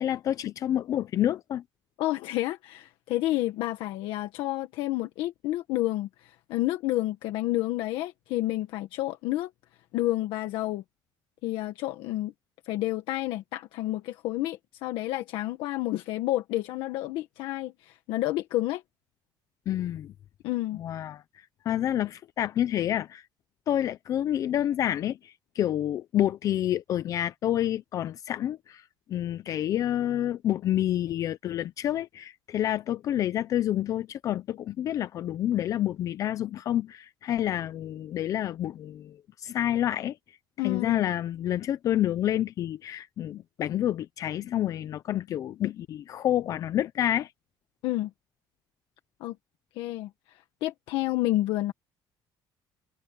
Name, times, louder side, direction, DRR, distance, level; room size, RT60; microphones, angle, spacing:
voice 1, 0.0-1.6 19.7-20.1 20.8-21.2 21.7-23.2 23.7-28.8 29.1-40.2 40.6-47.3, left 11 dB, 40° left, 0.5 m, -28 dB
voice 2, 2.0-9.5 9.9-10.8 11.4-12.3 12.6-18.8 20.4-20.8 40.6-41.0 47.8-48.1 49.2-49.4 49.8-51.7, left 16 dB, 80° left, 1.6 m, -30 dB
cardioid pair, 170°, 8 cm